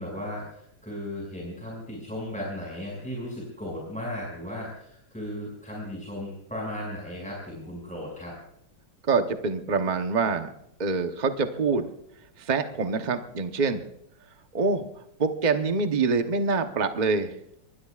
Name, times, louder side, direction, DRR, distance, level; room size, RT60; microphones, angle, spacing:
voice 1, 0.0-8.3, left 1 dB, 5° left, -3 dB, 5.8 m, -36 dB
voice 2, 9.1-10.5 10.8-11.9 12.4-13.8 14.5-14.9 15.2-17.3, right 4 dB, 45° right, 6 dB, 0.5 m, -25 dB
24.5 x 20.5 x 2.4 m, 0.74 s
omnidirectional pair, 2.2 m